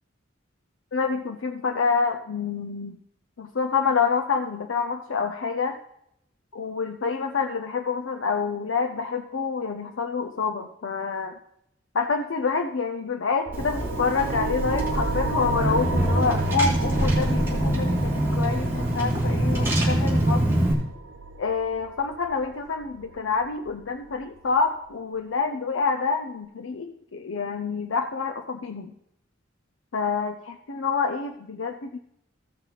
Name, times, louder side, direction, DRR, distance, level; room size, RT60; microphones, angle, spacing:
voice 1, 0.9-3.0 3.4-5.8 6.5-11.4 11.9-20.4 21.4-28.9 29.9-32.0, left 5 dB, 75° left, 5 dB, 0.6 m, -27 dB
Car / Engine, 13.5-20.7, right 1 dB, 10° right, 2.4 m, -24 dB
sound 1, 13.5-24.5, right 3 dB, 90° right, 0.6 m, -34 dB
15.5 x 5.8 x 4.1 m, 0.78 s
head